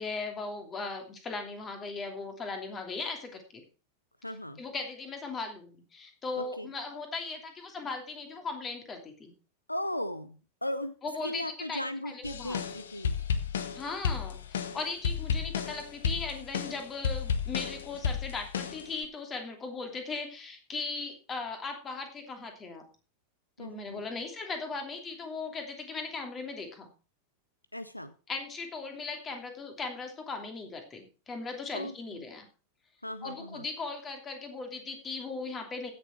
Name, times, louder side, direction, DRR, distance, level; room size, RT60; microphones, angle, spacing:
voice 1, 0.0-3.6 4.6-9.3 11.0-11.4 11.7-12.6 13.7-22.8 23.6-26.9 28.3-32.5 33.2-35.9, left 4 dB, 20° left, 5 dB, 2.9 m, -38 dB
voice 2, 4.2-4.6 6.4-6.7 9.7-13.2 23.6-24.1 27.7-28.1 31.7-32.2 33.0-33.7, left 1 dB, 85° left, 14 dB, 0.7 m, -37 dB
sound 1, 12.2-19.1, left 6 dB, 65° left, 1.1 m, -32 dB
16.0 x 6.9 x 4.5 m, 0.34 s
figure-of-eight pair, 90°, 0 cm